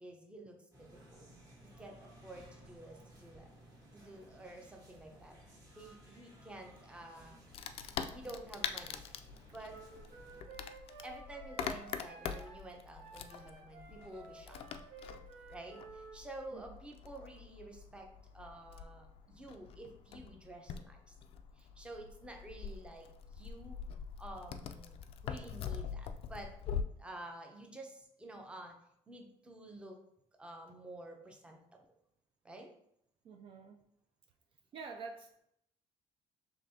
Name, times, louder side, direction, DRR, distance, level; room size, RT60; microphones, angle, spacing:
voice 1, 0.0-1.3 1.8-3.5 3.9-7.4 8.1-9.0 9.5-9.8 11.0-14.6 15.5-18.1 18.3-21.1 21.6-23.8 24.2-25.0 25.2-26.5 27.0-28.8 29.1-30.0 30.4-31.8 32.4-32.7, right 1 dB, 10° right, 2 dB, 0.7 m, -50 dB
sound 1, 0.7-10.4, right 1 dB, 30° right, 1.4 m, -58 dB
Wood, 7.5-26.8, left 7 dB, 55° left, 0.3 m, -44 dB
Wind instrument woodwind instrument, 9.7-16.2, right 4 dB, 80° right, 0.9 m, -54 dB
voice 2, 33.2-33.8 34.7-35.5, right 5 dB, 50° right, 3 dB, 0.4 m, -48 dB
5.2 x 3.3 x 2.7 m, 0.74 s
cardioid pair, 140°, 12 cm